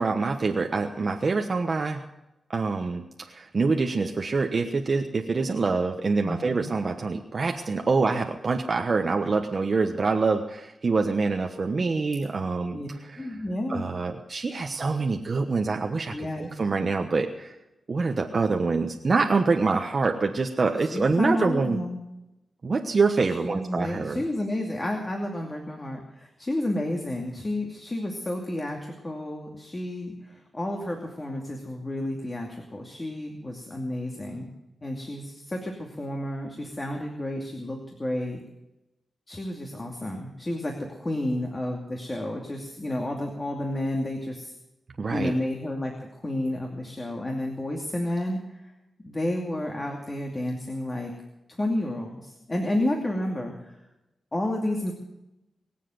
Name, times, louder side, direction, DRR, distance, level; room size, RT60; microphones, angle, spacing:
voice 1, 0.0-2.0 2.5-3.0 3.3-12.8 13.1-13.3 13.7-17.5 17.9-21.8 22.6-24.2 45.0-45.3, right 4 dB, 50° right, 3 dB, 1.2 m, -25 dB
voice 2, 6.2-6.7 12.7-12.9 13.2-13.9 16.1-16.5 20.9-22.0 23.4-34.5 34.8-38.4 39.3-44.5 45.1-48.7 49.0-51.1 51.5-53.8 54.3-54.9, left 1 dB, 25° left, 1 dB, 2.6 m, -31 dB
23.0 x 7.6 x 7.9 m, 0.92 s
cardioid pair, 80°, 0 cm